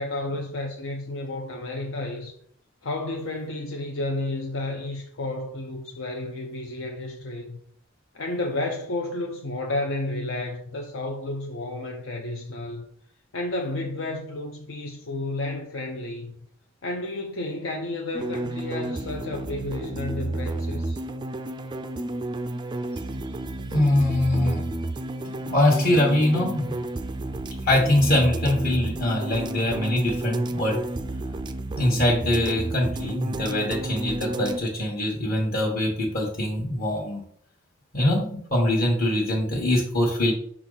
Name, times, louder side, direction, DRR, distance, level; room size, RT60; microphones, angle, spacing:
voice 1, 0.0-2.3 2.8-7.6 8.1-12.8 13.3-16.5 16.8-21.0, left 2 dB, 70° left, 0.7 m, -31 dB
sound 1, 18.1-34.6, right 2 dB, 20° right, 0.3 m, -31 dB
voice 2, 23.7-24.6 25.4-26.8 27.6-30.8 31.8-37.2 37.9-40.3, left 1 dB, 45° left, 1.2 m, -23 dB
6.1 x 4.3 x 3.9 m
head